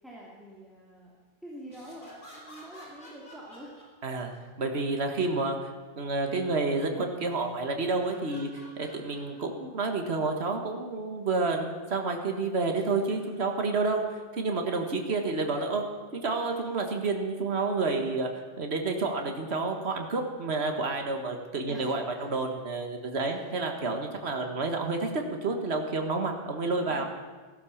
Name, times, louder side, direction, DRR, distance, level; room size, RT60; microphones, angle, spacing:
voice 1, 0.0-1.1 1.4-3.7 21.7-21.9 23.3-23.5 26.6-27.1, right 1 dB, ahead, -5 dB, 2.7 m, -46 dB
sound 1, 1.6-4.5 7.2-7.6 8.0-9.5 10.1-10.2 12.7-13.4 16.2-16.9 18.0-18.1, left 1 dB, 50° left, 3.5 m, -52 dB
voice 2, 4.6-5.7 6.0-15.8 16.1-18.3 18.6-27.1, right 3 dB, 75° right, 4 dB, 1.8 m, -29 dB
16.0 x 12.0 x 7.2 m, 1.4 s
omnidirectional pair, 1.1 m